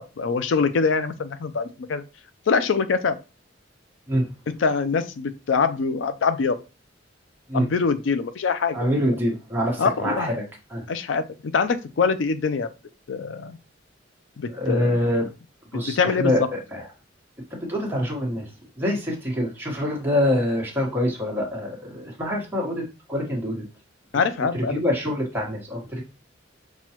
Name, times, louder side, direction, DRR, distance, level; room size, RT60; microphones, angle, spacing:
voice 1, 0.2-2.0 2.5-3.2 4.5-6.6 7.5-8.9 9.8-10.3 10.9-12.7 13.1-13.6 14.4-15.0 15.7-16.4 24.1-24.8, left 5 dB, 80° left, 12 dB, 0.4 m, -24 dB
voice 2, 8.7-10.4 10.7-10.8 14.5-15.3 15.7-16.8 17.7-18.5 18.8-22.8 23.1-23.6 24.7-26.0, left 1 dB, 10° right, -3 dB, 1.2 m, -25 dB
6.0 x 2.3 x 2.9 m, 0.30 s
head